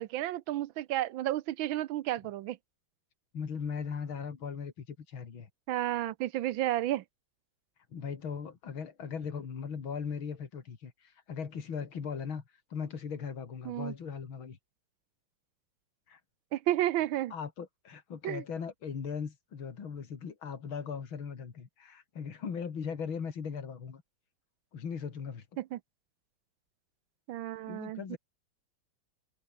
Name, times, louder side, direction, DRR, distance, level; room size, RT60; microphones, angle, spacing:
voice 1, 0.0-2.6 5.7-7.0 13.6-13.9 16.5-17.3 18.2-18.4 25.6-25.8 27.3-28.2, right 14 dB, 80° right, 1.5 m, -32 dB
voice 2, 3.3-5.5 7.9-12.4 12.7-14.6 16.1-16.2 17.3-24.0 24.7-25.5 27.7-28.2, left 6 dB, 85° left, 3.2 m, -38 dB
omnidirectional pair, 2.2 m